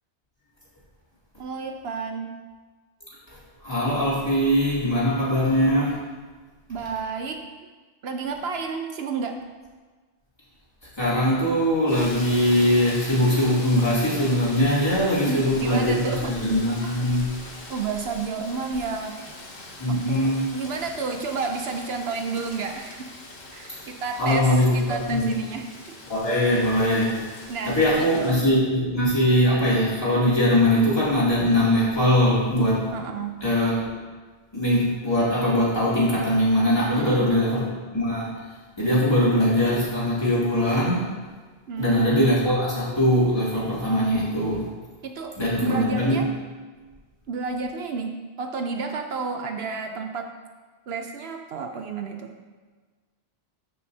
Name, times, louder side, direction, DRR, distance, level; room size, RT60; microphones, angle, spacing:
voice 1, 1.4-2.3 6.7-7.4 8.0-9.4 15.3-16.3 16.8-17.0 17.7-19.2 19.9-23.1 23.5-25.7 26.6-26.8 27.5-28.3 32.9-33.4 36.9-37.5 41.7-42.1 44.0-44.1 45.0-45.3 45.6-46.3 47.3-50.3 50.9-52.3, right 4 dB, 70° right, 4 dB, 0.9 m, -31 dB
voice 2, 3.3-6.0 11.0-17.3 19.8-20.4 24.2-25.3 26.1-27.2 27.7-32.9 33.4-33.9 34.5-37.6 37.9-38.3 38.8-41.0 41.8-44.7 45.4-46.3, left 1 dB, 25° left, -8 dB, 2.6 m, -21 dB
Rain, 11.9-28.5, left 2 dB, 60° left, 1.3 m, -41 dB
14.0 x 5.8 x 2.7 m, 1.4 s
omnidirectional pair, 1.1 m